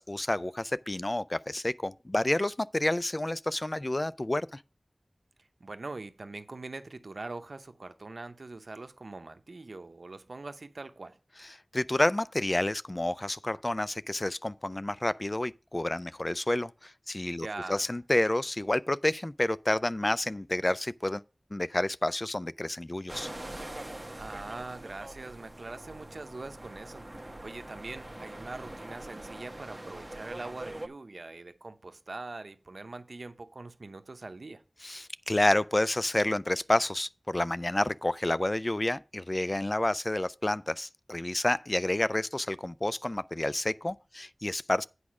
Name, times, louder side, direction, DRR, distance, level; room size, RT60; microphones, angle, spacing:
voice 1, 0.0-4.6 11.7-21.2 21.5-23.3 34.8-44.8, left 1 dB, 35° left, 0.3 m, -29 dB
voice 2, 5.6-11.2 17.4-17.8 24.1-34.6, right 3 dB, 80° right, 0.7 m, -42 dB
sound 1, 23.1-30.9, right 1 dB, 30° right, 1.1 m, -43 dB
8.5 x 4.8 x 6.0 m
wide cardioid pair, 50°, 0 cm